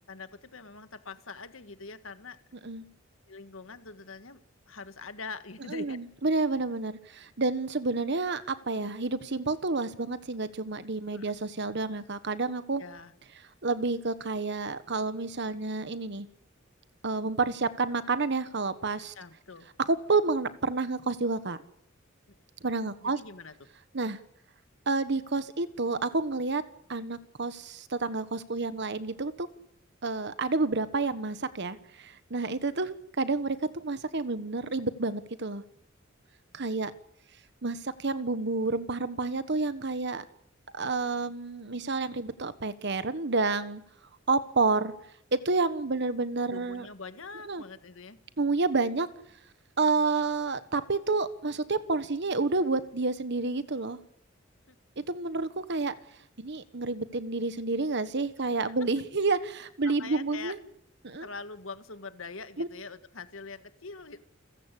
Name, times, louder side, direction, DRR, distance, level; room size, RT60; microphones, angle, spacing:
voice 1, 0.0-2.4 3.3-4.4 4.7-6.0 11.1-11.3 12.8-13.1 19.1-19.7 22.3-22.4 23.0-23.7 32.5-32.6 46.5-48.2 54.7-54.8 59.8-60.5 61.2-64.2, left 4 dB, 85° left, 11 dB, 1.7 m, -43 dB
voice 2, 5.7-12.8 13.6-16.3 17.0-19.1 19.9-21.6 22.6-23.2 23.9-24.2 24.9-26.6 26.9-29.5 30.0-35.6 36.5-36.9 37.6-40.2 40.7-43.8 44.3-44.9 45.3-46.9 47.5-47.6 48.4-49.1 49.8-54.0 55.0-55.9 56.4-60.6 61.0-61.3 62.6-62.7, right 3 dB, 60° right, 13 dB, 1.3 m, -29 dB
28.5 x 15.5 x 8.3 m, 0.76 s
head